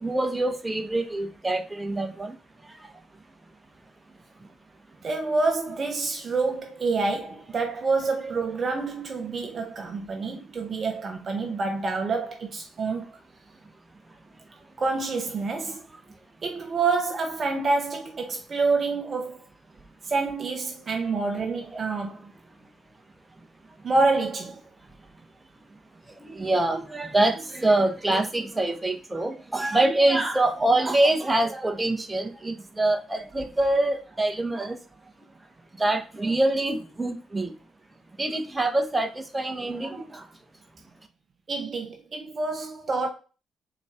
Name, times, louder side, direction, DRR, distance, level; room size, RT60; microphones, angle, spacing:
voice 1, 0.0-2.3 26.2-34.8 35.8-37.5 38.2-40.2, right 2 dB, 20° right, 1.0 m, -25 dB
voice 2, 5.0-13.2 14.8-15.8 16.4-19.5 20.0-22.3 23.8-24.6 41.5-43.1, right 3 dB, 45° right, 0.7 m, -27 dB
4.0 x 3.1 x 3.6 m
hypercardioid pair, 45°, 0 cm